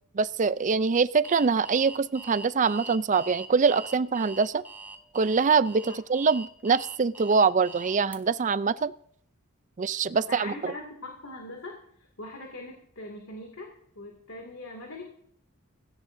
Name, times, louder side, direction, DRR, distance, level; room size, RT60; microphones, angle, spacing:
voice 1, 0.1-4.6 5.1-8.9 9.8-10.7, right 5 dB, 35° right, 15 dB, 0.4 m, -24 dB
Alarm, 1.2-8.2, right 3 dB, 10° right, 0.8 m, -43 dB
voice 2, 10.0-15.0, left 2 dB, 70° left, 1 dB, 2.4 m, -41 dB
17.0 x 16.0 x 2.7 m, 0.65 s
head